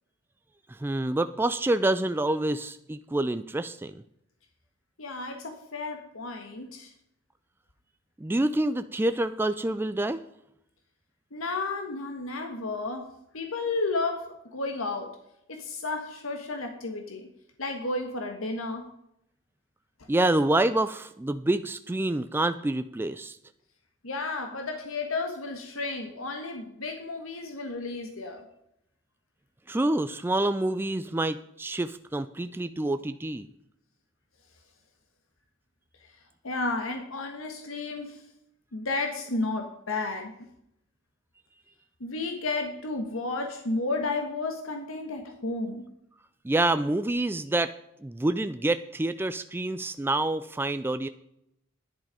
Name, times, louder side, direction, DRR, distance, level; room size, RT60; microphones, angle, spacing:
voice 1, 0.7-3.9 8.2-10.2 20.1-23.4 29.7-33.5 46.4-47.7 48.0-51.1, right 2 dB, 10° right, 10 dB, 0.4 m, -27 dB
voice 2, 5.0-6.9 11.3-15.2 15.5-17.3 17.6-18.9 24.0-28.4 36.4-38.2 38.7-40.3 42.0-45.8, left 3 dB, 85° left, 4 dB, 1.5 m, -32 dB
10.5 x 10.5 x 5.1 m, 0.78 s
head